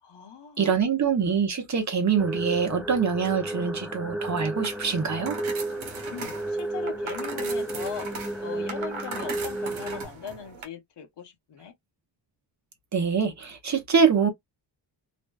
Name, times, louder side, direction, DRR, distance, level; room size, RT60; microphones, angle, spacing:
voice 1, 0.0-0.8 6.1-8.1 8.4-11.7, left 7 dB, 60° left, 0.9 m, -40 dB
voice 2, 0.6-5.4 12.9-14.3, right 6 dB, 40° right, 0.7 m, -24 dB
sound 1, 2.2-10.0, right 1 dB, ahead, 0.3 m, -33 dB
sound 2, 4.5-10.7, right 4 dB, 85° right, 0.9 m, -39 dB
2.5 x 2.2 x 2.2 m
cardioid pair, 80°, 47 cm